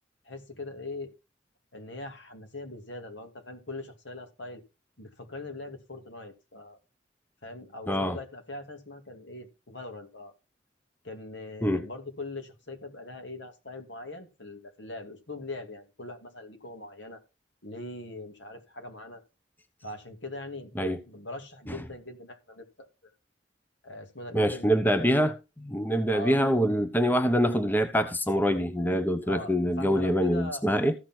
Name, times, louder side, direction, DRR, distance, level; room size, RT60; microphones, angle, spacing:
voice 1, 0.2-1.1 1.7-4.6 5.0-6.8 7.4-10.3 11.0-17.2 17.6-19.2 19.8-20.7 21.1-22.9 23.8-25.0 26.1-26.4 29.2-30.7, left 2 dB, 75° left, 2.5 m, -41 dB
voice 2, 7.9-8.2 11.6-11.9 20.8-21.0 21.7-21.8 24.3-30.9, equal, 10° left, 0.9 m, -25 dB
14.5 x 6.1 x 4.4 m
head